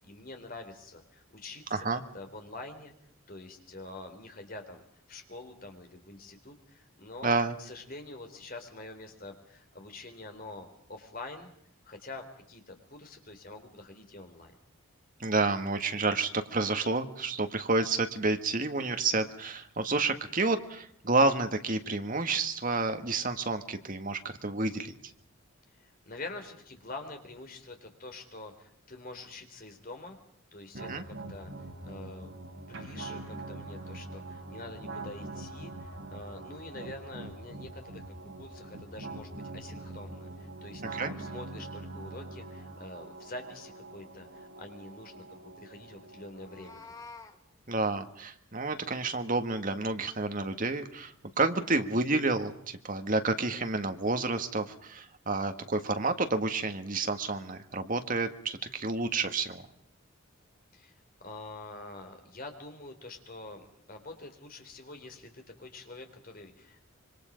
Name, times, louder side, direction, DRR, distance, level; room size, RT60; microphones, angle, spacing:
voice 1, 0.0-1.9 2.1-2.9 3.3-7.3 7.6-11.5 11.8-14.5 25.7-30.2 30.5-31.5 31.8-46.8 60.7-66.9, left 2 dB, 40° left, 5 dB, 3.7 m, -46 dB
voice 2, 1.7-2.0 7.2-7.6 15.2-24.9 30.9-31.0 40.9-41.1 47.7-59.7, right 3 dB, 40° right, 7 dB, 1.7 m, -30 dB
sound 1, 30.7-46.7, right 2 dB, 70° right, 3.9 m, -43 dB
Meow, 46.3-47.4, left 4 dB, 15° left, 1.5 m, -48 dB
26.5 x 24.0 x 5.2 m, 0.70 s
head